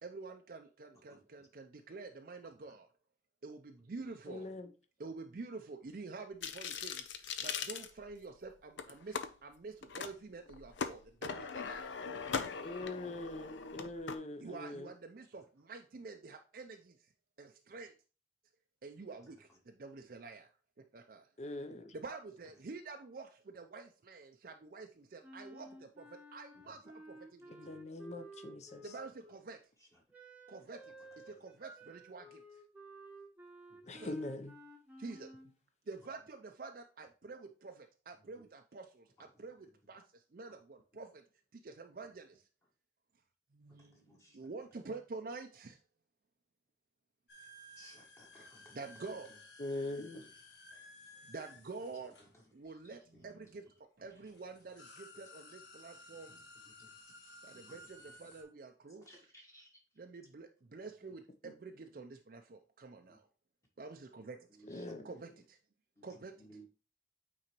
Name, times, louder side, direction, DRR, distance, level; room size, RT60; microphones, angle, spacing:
voice 1, 0.0-2.9 3.4-4.5 5.0-12.5 14.4-17.0 17.4-18.0 18.8-20.5 20.8-21.3 21.9-27.5 28.8-29.6 30.5-30.9 31.2-32.6 33.9-34.1 35.0-35.5 35.9-41.2 41.5-42.4 43.5-45.8 48.3-49.4 50.0-50.1 50.7-50.9 51.3-52.2 52.5-56.4 57.4-59.3 60.0-63.3 63.8-64.5 65.0-65.6 66.0-66.3, right 3 dB, 50° right, 0.5 m, -48 dB
voice 2, 4.3-4.7 12.6-14.9 21.4-21.9 27.5-28.9 33.9-34.5 49.6-50.2 61.4-61.5 64.7-65.1, left 2 dB, 40° left, 0.6 m, -42 dB
sound 1, 6.4-8.4 8.8-9.3 9.8-10.1 10.5-14.2, left 6 dB, 90° left, 0.6 m, -40 dB
Wind instrument woodwind instrument, 25.2-29.4 30.1-35.5, right 1 dB, 10° right, 0.9 m, -54 dB
voice 3, 43.8-44.4 47.7-48.8 56.8-56.9 57.7-57.8 59.0-59.7 64.5-65.0 66.0-66.7, right 1 dB, 15° left, 1.2 m, -59 dB
sound 2, 47.3-53.0 53.8-53.9 54.2-58.4, left 2 dB, 75° left, 1.4 m, -56 dB
8.7 x 3.9 x 3.0 m
head